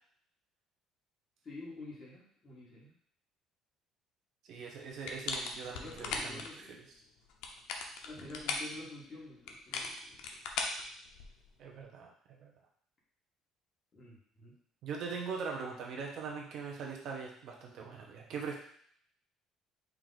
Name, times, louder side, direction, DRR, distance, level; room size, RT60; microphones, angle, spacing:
voice 1, 1.4-2.9 5.7-6.7 8.0-10.4 13.9-14.5, left 2 dB, 25° left, -5 dB, 1.5 m, -48 dB
voice 2, 4.4-6.4 11.6-12.5 14.8-18.6, right 5 dB, 55° right, -1 dB, 0.8 m, -41 dB
sound 1, 5.0-6.5 7.3-8.7 9.5-11.5, left 4 dB, 80° left, 0.6 m, -38 dB
4.6 x 2.5 x 3.9 m, 0.63 s
cardioid pair, 160°, 0 cm